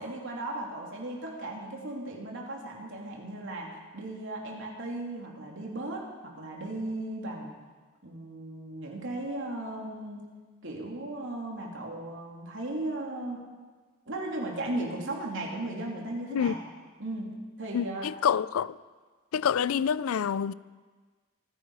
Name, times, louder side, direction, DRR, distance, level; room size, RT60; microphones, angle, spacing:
voice 1, 0.0-7.5 8.0-10.2 10.6-13.4 14.1-16.6 17.0-18.1, right 1 dB, 65° right, 3.0 m, -36 dB
voice 2, 17.7-18.8 19.3-20.5, left 7 dB, 75° left, 0.4 m, -27 dB
25.5 x 9.9 x 4.9 m
head